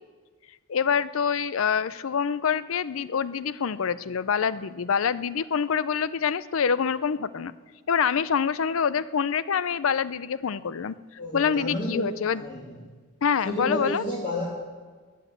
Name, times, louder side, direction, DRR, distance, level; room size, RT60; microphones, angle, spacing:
voice 1, 0.7-7.5 7.9-10.9 11.3-12.4 13.2-14.0, left 6 dB, 70° left, 17 dB, 0.5 m, -26 dB
voice 2, 11.2-12.6 13.4-14.5, left 1 dB, 35° left, -4 dB, 2.3 m, -31 dB
15.0 x 10.0 x 7.4 m, 1.5 s
head